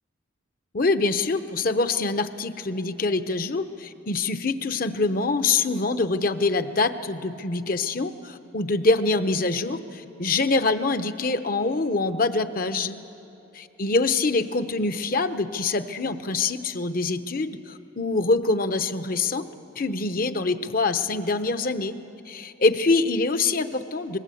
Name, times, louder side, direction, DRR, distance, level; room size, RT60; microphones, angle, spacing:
voice 1, 0.7-13.0 13.5-19.4 19.8-22.0 22.3-24.2, left 3 dB, 45° left, 10 dB, 0.8 m, -25 dB
23.5 x 20.5 x 8.4 m, 2.9 s
head